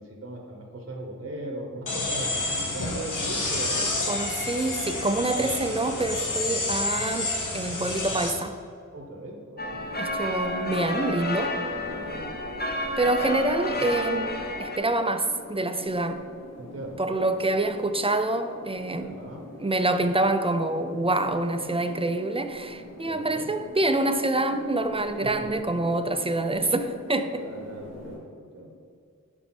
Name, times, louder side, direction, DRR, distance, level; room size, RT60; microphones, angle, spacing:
voice 1, 0.0-4.0 8.9-9.8 11.9-12.3 16.6-17.3 19.0-19.5 23.0-23.5 25.2-25.5 25.7-25.8 27.3-28.7, right 1 dB, 40° right, 0 dB, 0.8 m, -39 dB
sound 1, 1.9-8.3, left 2 dB, 75° left, 0.9 m, -29 dB
voice 2, 4.0-8.6 10.0-11.6 13.0-16.3 17.0-19.2 19.6-27.5, right 2 dB, 20° right, 9 dB, 0.4 m, -26 dB
sound 2, 9.6-14.8, left 1 dB, 30° left, 0.7 m, -30 dB
sound 3, 9.8-28.2, left 1 dB, 50° left, 1.2 m, -44 dB
5.9 x 4.4 x 4.2 m, 2.3 s
wide cardioid pair, 55°, 32 cm